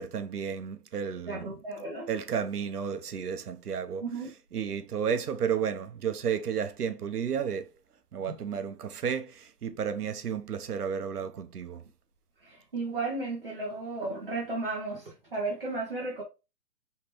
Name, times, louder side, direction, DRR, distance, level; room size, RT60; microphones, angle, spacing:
voice 1, 0.0-1.6 2.1-4.0 4.5-7.7 8.1-11.8, right 7 dB, 65° right, 0.8 m, -32 dB
voice 2, 1.3-2.1 4.0-4.3 12.4-16.2, right 3 dB, 35° right, 0.7 m, -34 dB
4.8 x 3.3 x 2.9 m
hypercardioid pair, 180°, 49 cm